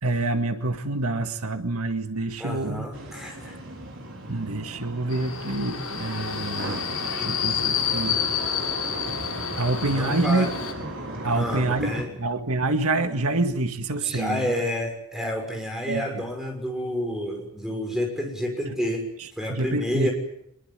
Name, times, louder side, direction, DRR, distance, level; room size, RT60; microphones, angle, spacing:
voice 1, 0.0-2.9 4.3-6.8 7.2-8.2 9.6-10.5 11.2-11.9 12.2-14.5 15.9-16.3 18.7-18.8 19.5-20.1, right 2 dB, 85° right, 7 dB, 1.9 m, -26 dB
voice 2, 2.4-3.6 9.8-10.5 11.3-12.1 14.0-19.1 19.4-20.1, equal, ahead, 2 dB, 6.6 m, -30 dB
sound 1, 2.9-12.0, right 1 dB, 60° right, 4.7 m, -36 dB
Subway metro underground, 5.1-10.7, left 8 dB, 80° left, 7.4 m, -29 dB
24.0 x 22.0 x 9.0 m, 0.77 s
head